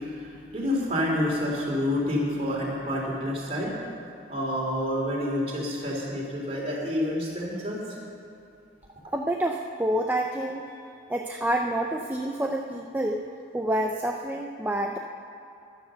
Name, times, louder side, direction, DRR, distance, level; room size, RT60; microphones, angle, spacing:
voice 1, 0.0-3.7 4.3-7.8, left 1 dB, 30° right, -3 dB, 3.2 m, -28 dB
voice 2, 9.1-10.6 11.1-13.2 13.5-15.0, right 1 dB, 10° right, 1 dB, 0.5 m, -28 dB
13.5 x 11.0 x 6.9 m, 2.7 s
head